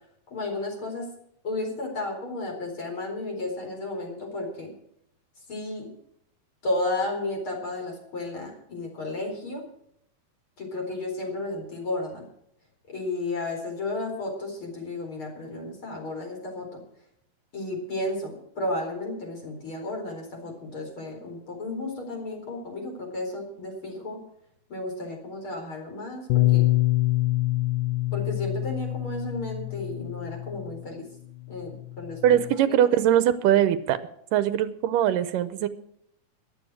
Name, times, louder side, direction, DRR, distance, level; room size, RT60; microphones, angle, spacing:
voice 1, 0.3-1.1 1.4-4.7 5.5-5.9 6.6-9.6 10.6-12.3 12.9-16.8 17.5-24.2 24.7-26.7 28.1-31.0 31.5-32.2 32.7-32.8, left 2 dB, 35° left, 2 dB, 5.0 m, -33 dB
Bass guitar, 26.3-30.8 31.6-32.6, left 18 dB, 80° left, 2.3 m, -26 dB
voice 2, 32.2-34.0 34.3-35.7, right 11 dB, 80° right, 13 dB, 2.4 m, -21 dB
14.5 x 11.0 x 6.3 m, 0.73 s
omnidirectional pair, 3.9 m